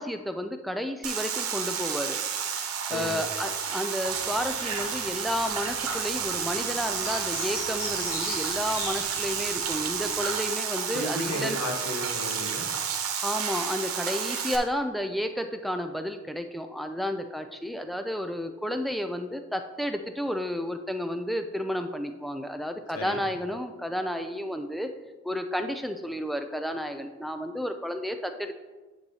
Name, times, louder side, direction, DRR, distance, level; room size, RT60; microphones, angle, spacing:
voice 1, 0.0-2.2 2.9-11.6 13.2-24.9 25.2-28.5, equal, ahead, 6 dB, 0.3 m, -31 dB
sound 1, 1.0-14.6, right 7 dB, 85° right, 1.0 m, -31 dB
voice 2, 2.9-3.2 10.9-12.7 22.9-23.2, left 1 dB, 85° left, 2 dB, 1.1 m, -34 dB
sound 2, 4.0-10.2, left 1 dB, 45° left, 1.6 m, -41 dB
9.5 x 6.1 x 2.8 m, 1.3 s
head